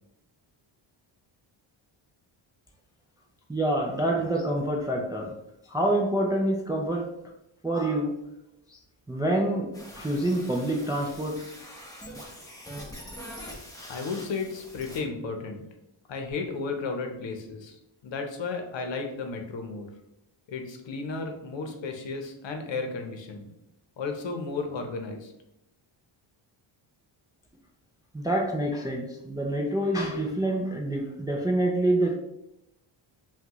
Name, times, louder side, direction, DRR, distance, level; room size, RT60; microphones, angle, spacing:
voice 1, 3.5-5.4 5.7-7.1 7.6-8.2 9.1-11.5 28.1-32.2, right 1 dB, 10° right, 0 dB, 0.3 m, -27 dB
sound 1, 9.7-15.0, equal, 5° left, 1.0 m, -43 dB
voice 2, 13.8-15.6 16.1-17.7 18.0-19.9 20.5-23.5 24.0-25.3, left 4 dB, 65° left, 4 dB, 0.9 m, -33 dB
5.7 x 2.4 x 3.0 m, 0.85 s
cardioid pair, 120°, 49 cm